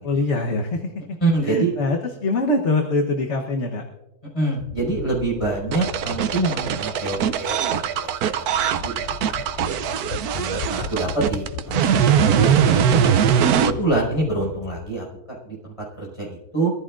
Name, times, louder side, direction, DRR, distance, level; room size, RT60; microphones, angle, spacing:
voice 1, 0.0-1.2 1.4-3.9, left 2 dB, 50° left, 2 dB, 1.3 m, -23 dB
voice 2, 1.2-1.7 4.3-7.8 8.7-9.8 10.3-13.0 13.6-16.7, right 2 dB, 20° left, -4 dB, 5.3 m, -26 dB
sound 1, 4.6-14.9, left 9 dB, 65° left, 0.9 m, -36 dB
sound 2, 5.7-13.7, right 8 dB, 80° right, 1.1 m, -21 dB
23.5 x 14.5 x 2.5 m, 1.0 s
omnidirectional pair, 1.6 m